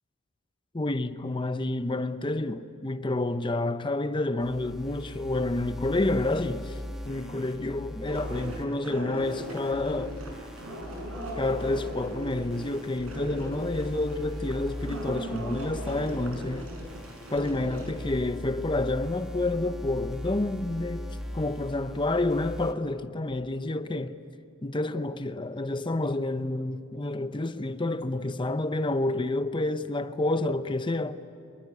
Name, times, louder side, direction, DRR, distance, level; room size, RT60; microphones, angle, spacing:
voice 1, 0.7-6.8 7.0-10.2 11.4-16.7 17.3-21.1 21.3-24.2 24.6-31.2, left 2 dB, 20° left, 0.7 m, -29 dB
sound 1, 4.4-8.6 9.2-22.7, left 1 dB, ahead, 1.6 m, -40 dB
sound 2, 8.0-17.9, right 1 dB, 85° right, 6.9 m, -39 dB
24.5 x 22.0 x 9.5 m
head